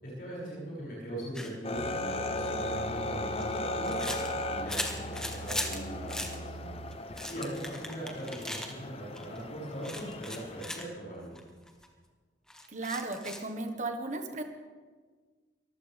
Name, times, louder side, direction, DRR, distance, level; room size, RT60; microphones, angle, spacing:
voice 1, 0.0-4.2 4.5-6.7 7.3-11.3, right 1 dB, 50° left, -6 dB, 6.3 m, -40 dB
sound 1, 1.3-1.5 2.9-5.8 6.1-6.4 6.9-8.7 9.1-9.4 9.8-10.8 11.3-11.4 11.7-11.9 12.5-13.5, left 1 dB, 5° left, 1.1 m, -38 dB
sound 2, 1.6-10.8, left 2 dB, 30° left, 0.7 m, -37 dB
sound 3, 1.7-7.0, right 2 dB, 70° right, 0.8 m, -44 dB
voice 2, 12.7-14.4, right 2 dB, 40° right, 5 dB, 1.4 m, -35 dB
23.0 x 15.0 x 3.5 m, 1.5 s
head